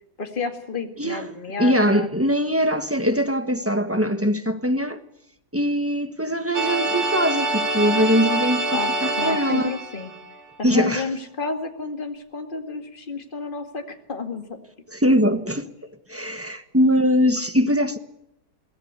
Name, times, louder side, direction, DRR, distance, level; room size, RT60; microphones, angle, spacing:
voice 1, 0.2-2.1 8.7-10.1 10.6-14.6, left 4 dB, 30° left, 2.2 m, -31 dB
voice 2, 1.6-5.0 5.5-9.7 10.6-11.0 14.9-15.7 16.1-18.0, equal, 10° right, 1.1 m, -22 dB
sound 1, 6.5-10.4, right 2 dB, 65° right, 2.9 m, -25 dB
23.0 x 16.0 x 8.0 m
omnidirectional pair, 1.8 m